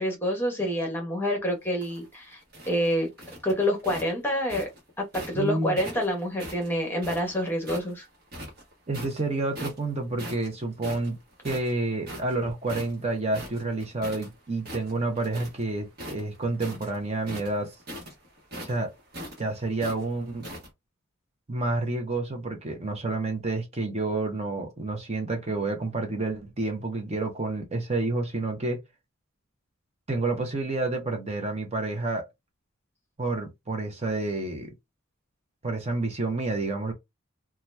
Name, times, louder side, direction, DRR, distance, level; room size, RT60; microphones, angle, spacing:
voice 1, 0.0-2.4 2.7-3.1 3.4-4.7 5.1-8.0, equal, 10° left, 1.0 m, -27 dB
sound 1, 1.6-5.4 5.8-7.9 8.3-9.2 9.5-9.9 10.2-14.3 14.6-15.6 15.9-20.7, equal, 45° right, 1.2 m, -41 dB
voice 2, 5.3-5.8 8.9-11.2 11.4-17.7 18.6-18.9 19.4-20.4 21.5-28.8 30.1-32.2 33.2-34.7 35.6-36.9, right 2 dB, 30° right, 0.7 m, -29 dB
2.8 x 2.3 x 3.3 m
head